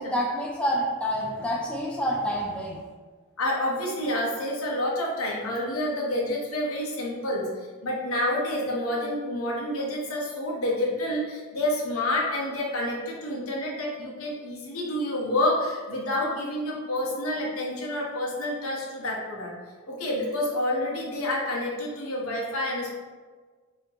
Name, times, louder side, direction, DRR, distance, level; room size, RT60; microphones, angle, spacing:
voice 1, 0.0-2.9, equal, 5° left, -2 dB, 0.3 m, -28 dB
voice 2, 3.4-19.5 19.9-22.9, left 1 dB, 85° left, -2 dB, 0.9 m, -28 dB
4.2 x 2.6 x 2.9 m, 1.4 s
head